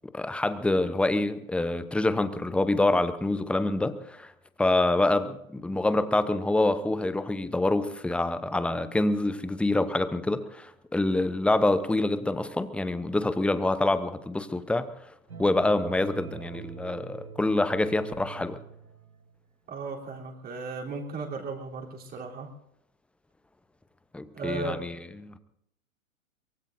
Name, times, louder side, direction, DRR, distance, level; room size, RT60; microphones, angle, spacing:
voice 1, 0.1-4.3 4.6-14.9 15.4-18.6 24.1-25.0 25.2-25.4, left 2 dB, 5° left, 12 dB, 0.7 m, -26 dB
sound 1, 15.3-19.4, right 6 dB, 85° right, 1.6 m, -44 dB
voice 2, 19.7-22.5 24.3-24.9, right 3 dB, 20° right, 0 dB, 3.5 m, -35 dB
24.0 x 22.5 x 2.6 m, 0.77 s
figure-of-eight pair, 110°, 42 cm